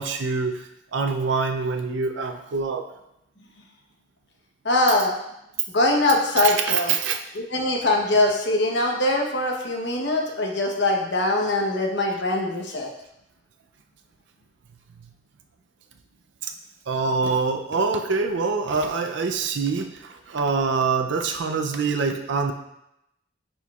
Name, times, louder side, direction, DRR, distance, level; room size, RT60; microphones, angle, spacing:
voice 1, 0.0-2.9 6.4-7.2 16.4-16.5 16.9-22.5, right 4 dB, 75° right, 5 dB, 0.5 m, -25 dB
voice 2, 4.6-5.1 5.7-6.9 7.5-12.9, left 2 dB, 65° left, 1 dB, 1.0 m, -22 dB
9.3 x 4.5 x 2.4 m, 0.83 s
head